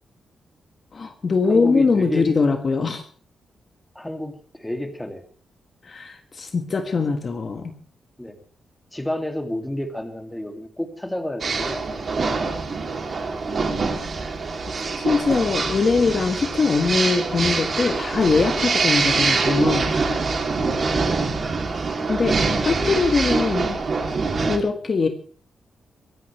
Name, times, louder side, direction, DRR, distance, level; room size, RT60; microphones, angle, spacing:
voice 1, 0.9-3.0 5.8-7.7 15.0-19.9 22.1-23.8 24.4-25.1, left 4 dB, 35° left, 6 dB, 1.6 m, -22 dB
voice 2, 1.4-2.3 3.9-5.2 8.2-8.4 8.9-11.8 20.6-20.9 22.6-23.0, left 1 dB, 5° left, 5 dB, 2.4 m, -30 dB
sound 1, 11.4-24.6, right 4 dB, 40° right, 3.0 m, -24 dB
23.0 x 16.5 x 3.3 m, 0.42 s
wide cardioid pair, 165°, 0 cm